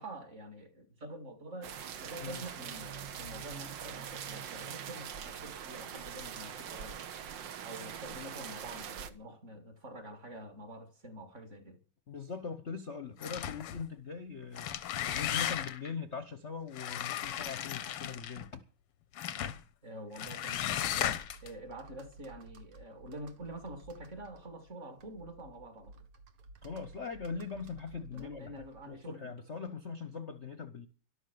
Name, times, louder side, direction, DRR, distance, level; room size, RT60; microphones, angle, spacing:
voice 1, 0.0-7.1 7.6-11.8 19.8-26.0 28.1-29.4, right 1 dB, 35° right, 2.4 m, -47 dB
sound 1, 1.6-9.1, right 8 dB, 60° right, 1.7 m, -43 dB
voice 2, 12.1-14.7 15.1-18.6 26.6-28.5 28.9-30.9, left 5 dB, 40° left, 1.1 m, -41 dB
sound 2, 13.2-13.8 14.4-15.9 16.7-18.5 19.2-19.6 20.2-21.5, left 11 dB, 90° left, 2.0 m, -35 dB
Computer keyboard, 20.5-29.1, right 2 dB, 75° right, 2.3 m, -55 dB
12.5 x 12.0 x 6.9 m
omnidirectional pair, 2.4 m